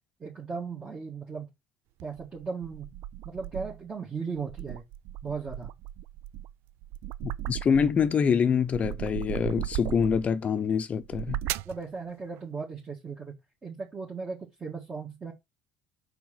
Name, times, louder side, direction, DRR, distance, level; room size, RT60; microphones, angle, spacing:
voice 1, 0.2-1.5 2.0-2.9 3.2-4.8 5.2-5.7 11.7-13.3 13.6-15.3, right 5 dB, 25° right, 1.8 m, -37 dB
sound 1, 2.0-3.9 4.4-8.1 8.5-10.4 11.0-11.8, right 14 dB, 75° right, 0.3 m, -37 dB
voice 2, 7.2-11.4, left 6 dB, 35° left, 0.7 m, -25 dB
5.0 x 4.6 x 5.9 m
cardioid pair, 105°, 4 cm